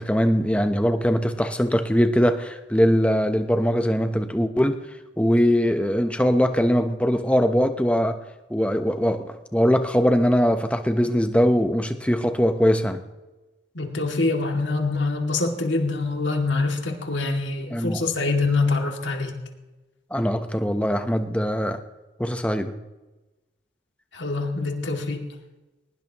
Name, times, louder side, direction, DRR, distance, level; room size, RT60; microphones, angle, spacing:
voice 1, 0.0-4.8 5.2-8.2 8.5-13.0 17.7-18.0 20.1-21.8 22.2-22.8, equal, 5° left, 7 dB, 0.8 m, -21 dB
voice 2, 13.7-19.4 24.1-25.3, left 3 dB, 75° left, 2 dB, 2.4 m, -25 dB
21.5 x 19.5 x 3.0 m, 1.1 s
head